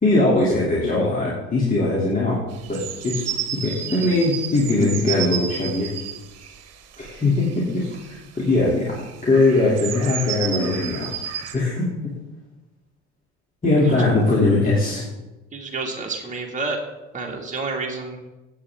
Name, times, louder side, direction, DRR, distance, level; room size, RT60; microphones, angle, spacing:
voice 1, 0.0-2.4 2.7-3.2 3.6-5.9 7.0-8.9 9.2-11.1 11.5-11.8 13.6-15.0, left 2 dB, 25° left, -5 dB, 3.0 m, -20 dB
sound 1, 2.5-8.2 8.5-11.5, right 10 dB, 55° right, 1.3 m, -32 dB
voice 2, 15.5-16.8 17.1-18.2, right 3 dB, 25° right, -1 dB, 2.1 m, -29 dB
15.5 x 8.4 x 3.7 m, 1.0 s
supercardioid pair, 80°, 30 cm